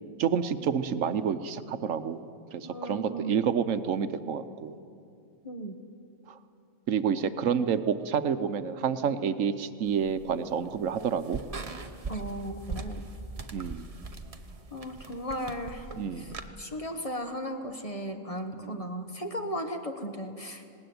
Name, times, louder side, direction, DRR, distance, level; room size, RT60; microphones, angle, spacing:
voice 1, 0.2-2.3 2.5-4.7 6.9-11.4 13.5-13.9 16.0-16.3 18.6-18.9, right 7 dB, 70° right, 10 dB, 1.2 m, -29 dB
voice 2, 2.6-3.5 5.4-5.8 12.1-13.0 14.7-15.9 16.1-20.6, equal, 25° left, 5 dB, 1.2 m, -36 dB
sound 1, 9.9-16.5, right 3 dB, 30° right, 0.9 m, -41 dB
19.5 x 18.0 x 9.4 m, 2.4 s
omnidirectional pair, 1.4 m